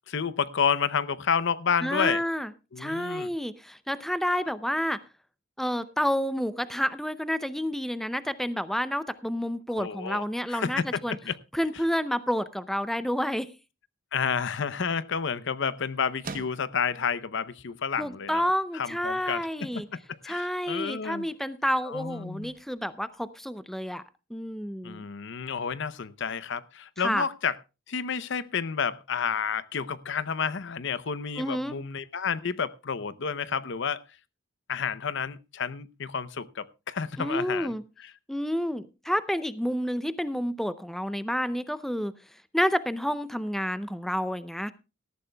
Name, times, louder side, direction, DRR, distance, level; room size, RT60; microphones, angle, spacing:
voice 1, 0.1-2.2 2.7-3.3 9.8-10.2 10.5-11.4 14.1-18.4 18.7-21.3 21.9-22.5 24.8-27.6 27.9-34.0 34.7-38.1, left 6 dB, 60° left, 17 dB, 0.7 m, -30 dB
voice 2, 1.8-2.5 2.8-5.0 5.6-11.2 11.5-13.5 18.0-19.9 20.2-24.0 24.3-25.0 27.0-27.3 31.4-31.8 37.2-37.8 38.3-42.1 42.5-44.7, equal, ahead, 14 dB, 0.6 m, -29 dB
sound 1, 14.2-24.0, right 4 dB, 45° right, 1.0 m, -51 dB
18.5 x 14.0 x 2.3 m, 0.28 s
head